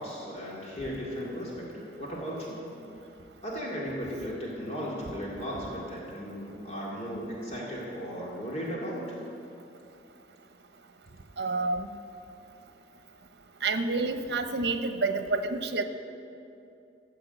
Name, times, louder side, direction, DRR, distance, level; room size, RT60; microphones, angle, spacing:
voice 1, 0.0-2.7 3.4-9.2, equal, 40° left, -5 dB, 2.2 m, -36 dB
voice 2, 11.4-11.9 13.6-15.8, right 3 dB, 70° right, 8 dB, 0.9 m, -28 dB
13.0 x 7.7 x 8.0 m, 2.7 s
head